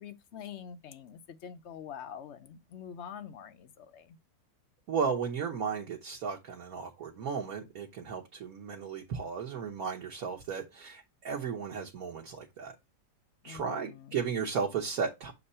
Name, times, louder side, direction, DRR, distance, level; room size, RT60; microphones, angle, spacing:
voice 1, 0.0-4.2 13.4-14.2, left 8 dB, 60° left, 0.7 m, -45 dB
voice 2, 4.9-12.7 13.4-15.3, right 6 dB, 60° right, 1.4 m, -35 dB
7.1 x 2.8 x 5.4 m
omnidirectional pair, 1.8 m